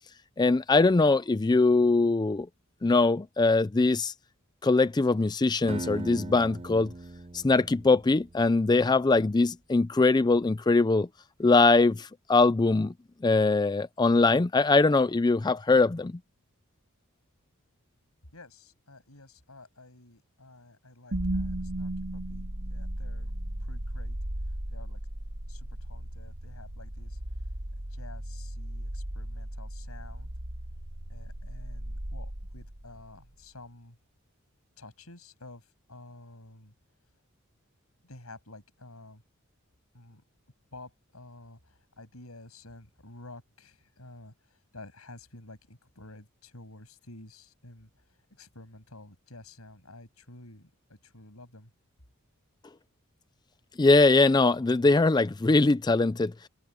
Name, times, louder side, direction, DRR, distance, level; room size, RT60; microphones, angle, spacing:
voice 1, 0.4-2.5 2.8-4.1 4.6-6.9 7.3-11.1 11.4-12.9 13.2-16.1 53.8-56.3, left 3 dB, 20° left, 0.4 m, -22 dB
Acoustic guitar, 5.7-8.7, right 2 dB, 30° right, 0.8 m, -40 dB
voice 2, 18.3-23.3 23.6-24.2 24.7-25.0 25.5-27.2 27.9-30.3 31.1-34.0 34.8-36.7 38.0-39.2 39.9-40.2 40.7-47.9 48.3-51.7, left 2 dB, 90° left, 7.6 m, -50 dB
sound 1, 21.1-33.2, right 1 dB, 70° right, 2.2 m, -36 dB
open air
head